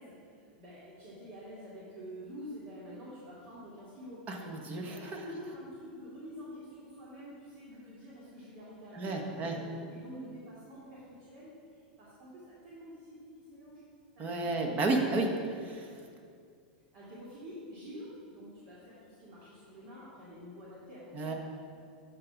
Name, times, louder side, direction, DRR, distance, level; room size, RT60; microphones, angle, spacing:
voice 1, 0.0-4.2 4.7-13.8 14.2-14.8 16.9-21.3, equal, 55° right, -8 dB, 2.3 m, -48 dB
voice 2, 4.3-5.2 8.9-9.6 14.2-15.3 15.6-15.9 21.1-21.3, right 2 dB, 35° right, 2 dB, 1.3 m, -32 dB
10.5 x 4.0 x 5.9 m, 2.3 s
hypercardioid pair, 120°, 5 cm